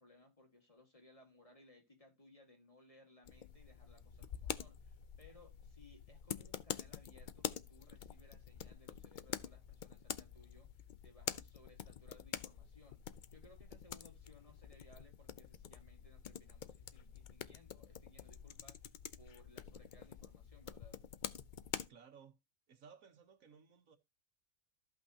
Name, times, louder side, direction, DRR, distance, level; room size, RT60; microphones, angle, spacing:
voice 1, 0.0-21.0, left 2 dB, 25° left, 1.8 m, -64 dB
sound 1, 3.3-21.9, left 8 dB, 65° left, 0.4 m, -47 dB
voice 2, 21.9-22.4 22.7-24.0, right 6 dB, 70° right, 1.5 m, -59 dB
14.5 x 5.5 x 2.8 m
omnidirectional pair, 1.5 m